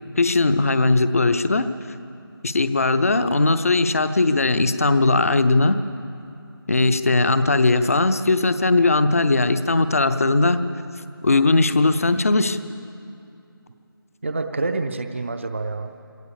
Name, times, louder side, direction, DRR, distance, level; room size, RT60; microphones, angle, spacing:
voice 1, 0.2-1.7 2.4-5.8 6.7-10.6 11.2-12.6, left 3 dB, 40° left, 11 dB, 0.7 m, -19 dB
voice 2, 7.2-7.5 14.2-16.0, right 3 dB, 30° right, 7 dB, 0.6 m, -28 dB
23.0 x 17.5 x 7.1 m, 2.6 s
figure-of-eight pair, 165°, 12 cm